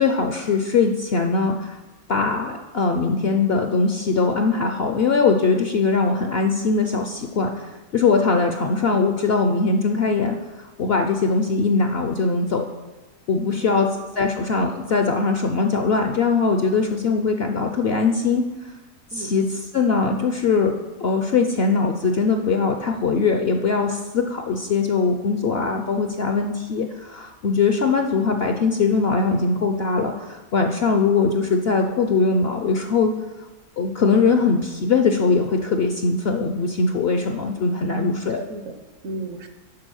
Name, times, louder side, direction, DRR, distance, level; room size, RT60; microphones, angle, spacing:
voice 1, 0.0-1.8 2.1-12.7 13.3-18.5 19.1-33.1 33.8-38.4, left 4 dB, 60° left, 5 dB, 0.7 m, -21 dB
voice 2, 13.5-13.9 19.1-19.3 37.9-38.8 39.0-39.5, right 1 dB, 65° right, 8 dB, 1.1 m, -34 dB
10.5 x 4.5 x 6.3 m, 1.2 s
omnidirectional pair, 1.6 m